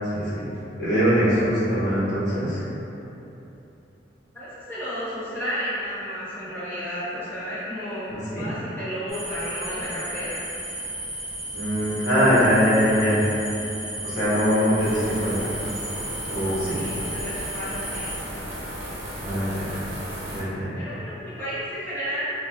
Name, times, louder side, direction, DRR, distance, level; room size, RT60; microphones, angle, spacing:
voice 1, 0.1-0.5 0.8-2.6 8.1-8.5 11.5-13.2 14.0-15.5 16.0-16.8 19.1-19.8 20.2-20.9, equal, 65° left, -11 dB, 0.9 m, -23 dB
voice 2, 4.3-10.4 16.7-18.1 20.7-22.3, equal, 10° left, -14 dB, 0.7 m, -32 dB
sound 1, 9.1-18.2, right 1 dB, 15° right, 0.8 m, -34 dB
sound 2, 14.8-20.4, right 1 dB, 80° right, 0.7 m, -35 dB
2.8 x 2.2 x 2.3 m, 3.0 s
head